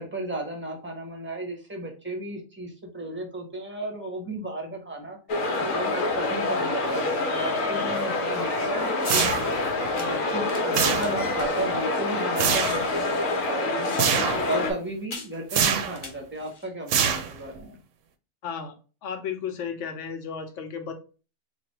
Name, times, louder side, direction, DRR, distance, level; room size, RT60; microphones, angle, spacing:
voice 1, 0.0-5.2 5.7-9.3 9.9-13.9 14.4-17.8, right 1 dB, 10° right, 2 dB, 0.7 m, -34 dB
sound 1, 5.3-14.7, left 2 dB, 85° left, 1.2 m, -26 dB
sound 2, 9.0-9.4 10.0-11.8 12.0-12.1 12.3-14.5 15.1-15.4 15.9-16.7, left 3 dB, 35° left, 0.5 m, -38 dB
sound 3, 9.0-9.7 10.7-11.4 12.4-12.9 14.0-14.5 15.5-16.0 16.9-17.6, right 8 dB, 75° right, 0.9 m, -25 dB
voice 2, 18.4-18.8 19.0-20.9, left 6 dB, 70° left, 5 dB, 1.1 m, -34 dB
3.2 x 2.5 x 4.0 m, 0.34 s
omnidirectional pair, 1.3 m